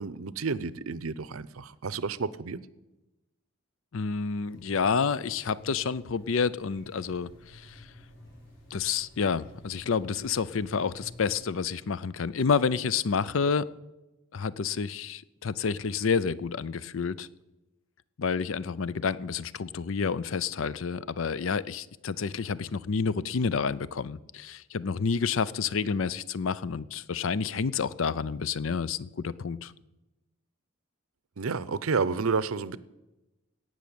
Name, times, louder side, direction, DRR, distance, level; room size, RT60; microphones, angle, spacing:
voice 1, 0.0-2.6 31.4-32.8, right 4 dB, 80° right, 17 dB, 0.6 m, -30 dB
voice 2, 3.9-7.8 8.7-13.7 14.3-17.3 18.2-29.7, left 5 dB, 70° left, 18 dB, 0.5 m, -29 dB
sound 1, 4.4-11.3, left 1 dB, 50° left, 6.1 m, -51 dB
17.5 x 6.3 x 8.7 m, 1.0 s
head